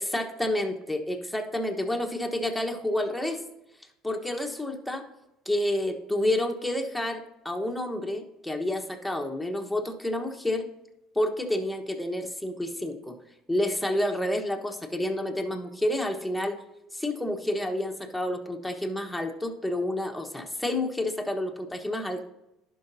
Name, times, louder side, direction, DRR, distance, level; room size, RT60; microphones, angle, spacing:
voice 1, 0.0-3.4 4.0-5.0 5.4-10.6 11.1-13.1 13.5-16.6 16.9-22.2, left 1 dB, ahead, 3 dB, 1.2 m, -29 dB
11.5 x 5.3 x 2.7 m, 0.89 s
supercardioid pair, 85°, 0 cm